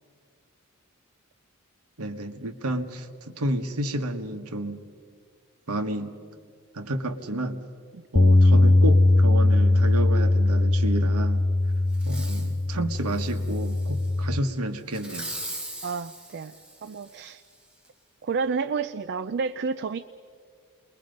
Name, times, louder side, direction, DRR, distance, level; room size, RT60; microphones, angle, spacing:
voice 1, 2.0-4.8 5.7-6.2 6.7-7.6 8.1-11.5 12.1-15.3, right 1 dB, 75° right, 7 dB, 1.3 m, -31 dB
Bass guitar, 8.2-14.4, left 2 dB, 25° left, 0.5 m, -20 dB
Fireworks, 11.9-12.5 13.1-14.1 14.9-17.3 17.8-17.9, right 1 dB, 5° right, 2.9 m, -40 dB
voice 2, 15.8-17.4 18.2-20.0, right 5 dB, 50° right, 10 dB, 0.5 m, -30 dB
29.5 x 21.5 x 5.3 m, 2.1 s
head